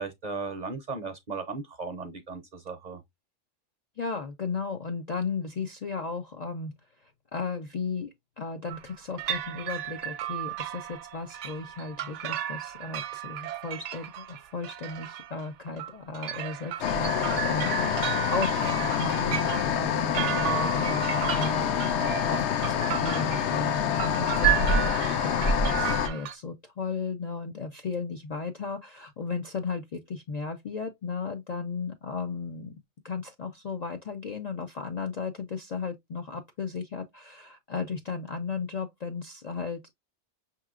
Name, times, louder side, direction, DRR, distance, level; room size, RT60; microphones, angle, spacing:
voice 1, 0.0-3.0, right 4 dB, 50° right, 0.6 m, -36 dB
voice 2, 4.0-32.7 33.0-39.9, left 4 dB, 55° left, 0.4 m, -35 dB
sound 1, 8.7-8.9 9.2-26.3, right 12 dB, 80° right, 0.9 m, -34 dB
sound 2, 16.8-26.1, left 7 dB, 75° left, 0.8 m, -26 dB
5.6 x 3.0 x 2.3 m
omnidirectional pair, 1.2 m